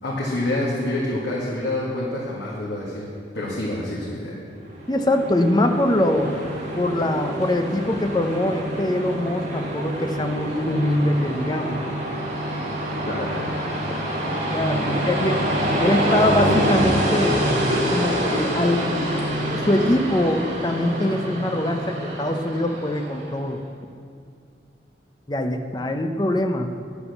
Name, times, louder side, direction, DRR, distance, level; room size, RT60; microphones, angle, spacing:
voice 1, 0.0-4.4 13.1-13.5 14.9-15.1, left 1 dB, 85° left, -6 dB, 1.9 m, -27 dB
Train, 4.7-23.3, equal, 40° right, 2.2 m, -26 dB
voice 2, 4.9-6.3 6.8-11.8 14.5-15.5 15.8-17.5 17.9-18.9 19.5-23.6 25.3-26.7, left 1 dB, 25° left, 5 dB, 0.6 m, -23 dB
10.5 x 7.1 x 6.8 m, 2.3 s
head